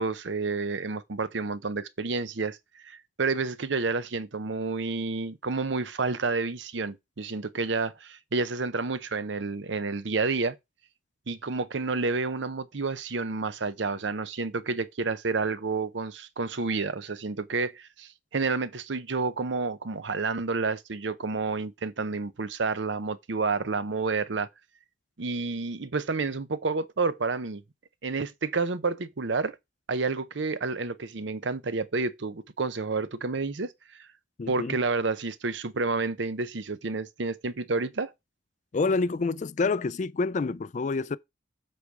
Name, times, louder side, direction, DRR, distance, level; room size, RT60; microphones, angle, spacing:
voice 1, 0.0-10.6 11.3-24.5 25.2-27.6 28.0-29.6 29.9-34.1 34.5-38.1, right 4 dB, 70° right, 0.7 m, -30 dB
voice 2, 34.4-34.8 38.7-41.2, left 3 dB, 40° left, 0.4 m, -27 dB
7.9 x 4.8 x 4.9 m
head